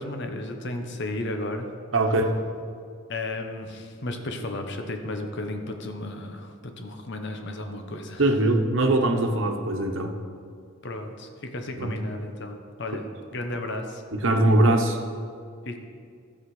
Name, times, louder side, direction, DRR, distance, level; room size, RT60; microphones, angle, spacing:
voice 1, 0.0-1.7 3.1-8.2 10.8-13.0 13.3-14.0 15.7-15.8, left 2 dB, 55° left, 5 dB, 1.0 m, -33 dB
voice 2, 1.9-2.4 8.2-10.1 11.8-11.9 14.1-15.0, right 1 dB, 65° right, 3 dB, 1.1 m, -21 dB
13.5 x 7.3 x 4.9 m, 2.2 s
head